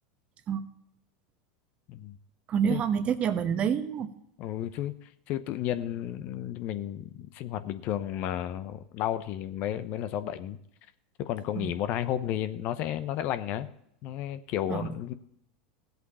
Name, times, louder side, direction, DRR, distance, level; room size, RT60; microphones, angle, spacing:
voice 1, 2.5-4.1 11.5-11.7 14.7-14.9, right 7 dB, 40° right, 10 dB, 1.1 m, -27 dB
voice 2, 4.4-4.9 5.3-10.6 11.2-13.7 14.0-15.1, left 11 dB, 50° left, 12 dB, 0.9 m, -32 dB
17.0 x 8.1 x 4.2 m, 0.74 s
hypercardioid pair, 90°, 3 cm